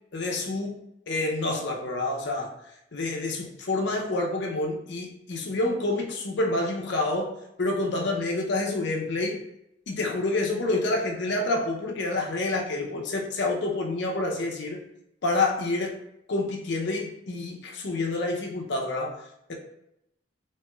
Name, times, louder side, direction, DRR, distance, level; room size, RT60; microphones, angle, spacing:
voice 1, 0.1-2.5 2.9-7.3 7.6-9.4 9.9-14.8 15.2-16.0 16.3-19.2 19.5-19.6, left 2 dB, 65° left, 1 dB, 0.6 m, -28 dB
3.0 x 2.9 x 2.3 m, 0.82 s
head